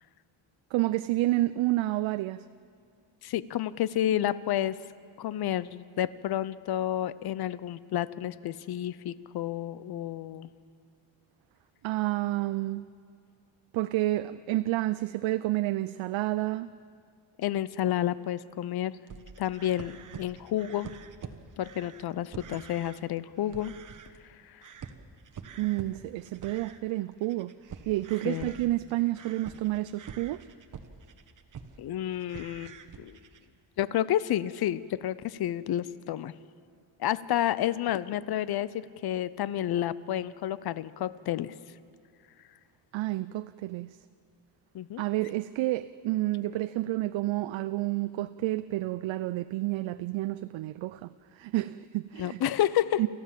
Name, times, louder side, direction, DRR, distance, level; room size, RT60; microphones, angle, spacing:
voice 1, 0.7-2.4 11.8-12.9 13.7-16.7 25.6-27.5 27.9-30.4 42.9-44.0 45.0-52.4 53.0-53.1, right 17 dB, 75° right, 12 dB, 0.6 m, -30 dB
voice 2, 3.2-4.8 5.2-10.5 17.4-18.9 19.4-20.9 21.6-23.7 24.5-24.6 28.2-28.5 31.8-33.2 33.8-36.3 37.0-41.5 44.7-45.0 52.2-53.0, left 12 dB, 55° left, 18 dB, 0.7 m, -30 dB
sound 1, 19.1-23.0 23.4-24.3 24.6-31.8 32.1-33.5, right 7 dB, 40° right, 1.2 m, -46 dB
28.0 x 14.5 x 7.5 m, 2.3 s
cardioid pair, 155°, 47 cm